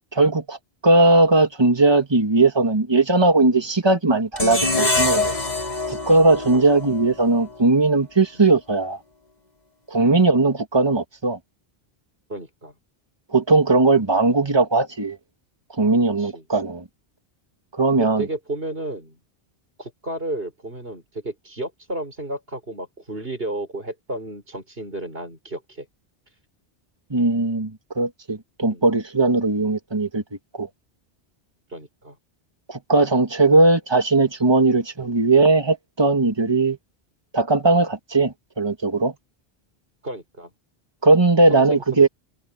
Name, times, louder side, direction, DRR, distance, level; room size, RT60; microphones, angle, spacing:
voice 1, 0.1-0.6 0.8-5.4 5.9-9.0 9.9-11.4 13.3-15.2 15.8-16.8 17.7-18.3 27.1-30.2 30.6-30.7 32.7-36.8 37.3-39.1 41.0-42.1, right 3 dB, 25° right, 2.0 m, -18 dB
sound 1, 4.4-7.5, left 3 dB, 45° left, 4.2 m, -25 dB
voice 2, 12.3-12.7 16.2-16.5 18.2-19.2 19.8-25.9 28.7-28.8 31.7-32.2 33.5-33.6 34.7-34.8 36.4-36.6 40.0-40.5 41.5-41.8, right 1 dB, 70° right, 6.7 m, -33 dB
omnidirectional pair, 1.0 m